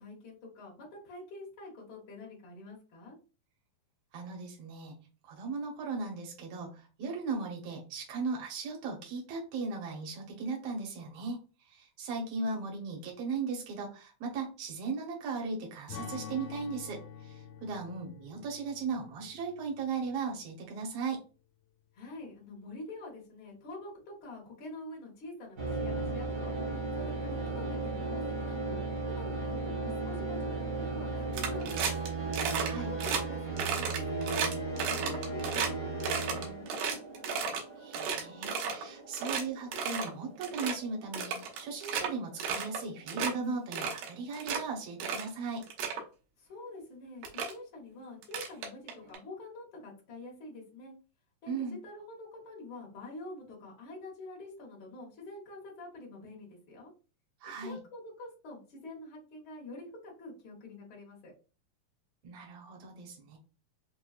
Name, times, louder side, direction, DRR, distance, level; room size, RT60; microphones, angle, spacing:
voice 1, 0.0-3.2 21.9-26.5 26.9-28.8 29.1-32.1 32.7-37.0 46.4-50.9 51.4-56.9 57.6-61.3, left 2 dB, 65° left, -2 dB, 1.2 m, -46 dB
voice 2, 4.1-5.0 5.2-11.4 11.7-21.2 32.6-32.9 37.8-45.6 51.5-51.8 57.4-57.8 62.2-63.4, right 4 dB, 70° right, 0 dB, 1.5 m, -37 dB
Strum, 15.9-20.5, left 7 dB, 90° left, 2.4 m, -47 dB
sound 1, 25.6-43.8, right 3 dB, 50° right, 0.9 m, -37 dB
sound 2, 31.3-32.1 32.3-32.7 33.0-33.2 33.6-35.7 36.0-37.6 37.9-38.8 39.1-39.4 39.7-40.1 40.4-40.7 41.1-42.1 42.4-42.8 43.1-43.3 43.7-44.6 45.0-45.3 45.6-46.0 46.8-46.9 47.2-47.5 48.2-49.2, right 6 dB, 90° right, 2.7 m, -33 dB
6.0 x 2.2 x 2.3 m, 0.35 s
omnidirectional pair, 4.1 m